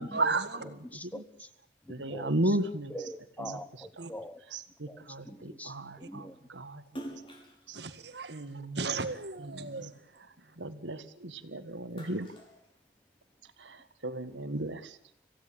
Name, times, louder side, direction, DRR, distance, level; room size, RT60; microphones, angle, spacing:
voice 1, 0.0-0.6 4.0-4.1 6.0-6.1 7.7-10.6 11.7-11.8, right 4 dB, 65° right, 10 dB, 1.9 m, -35 dB
voice 2, 0.8-1.5 1.8-2.4 2.9-4.4 4.9-6.4, equal, 10° left, 12 dB, 1.1 m, -43 dB
voice 3, 1.9-2.9 3.4-3.6 4.0-4.1 4.5-6.8 7.7-7.8 8.3-8.8 9.4-9.9 10.6-12.3 13.6-15.0, right 1 dB, 85° right, 11 dB, 1.7 m, -35 dB
Splash splatter, 6.8-9.4 9.9-11.3 11.7-13.4, right 1 dB, 30° left, 5.9 m, -47 dB
27.0 x 16.0 x 8.9 m, 0.74 s
head